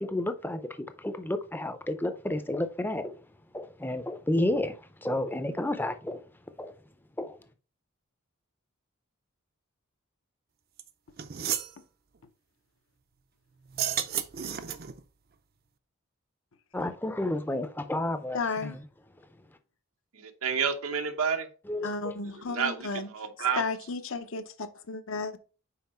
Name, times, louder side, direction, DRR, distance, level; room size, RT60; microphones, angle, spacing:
voice 1, 0.0-3.2 3.5-6.2 6.6-6.8 7.2-7.4 16.7-18.8 21.7-22.1, left 1 dB, 10° left, 0.5 m, -31 dB
sound 1, 10.8-10.9 11.2-11.7 13.7-15.0, right 10 dB, 45° right, 0.5 m, -32 dB
voice 2, 18.3-18.8 21.8-23.1 23.5-25.4, left 4 dB, 70° left, 0.7 m, -33 dB
voice 3, 20.1-21.5 22.5-23.6, right 6 dB, 85° right, 1.0 m, -30 dB
5.8 x 4.7 x 4.3 m
head